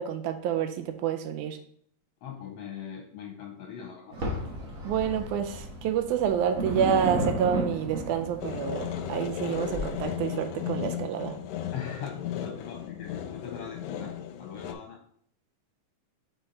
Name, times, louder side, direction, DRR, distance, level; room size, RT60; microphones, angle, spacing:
voice 1, 0.0-1.6 4.8-11.4, right 9 dB, 85° right, 8 dB, 2.1 m, -28 dB
voice 2, 2.2-4.1 11.7-14.1 14.4-15.0, left 7 dB, 75° left, 2 dB, 1.5 m, -40 dB
sound 1, 4.1-10.0, right 1 dB, 50° right, 1.0 m, -34 dB
sound 2, 8.4-14.7, left 9 dB, 90° left, 2.1 m, -35 dB
6.1 x 3.8 x 4.0 m, 0.62 s
omnidirectional pair, 3.5 m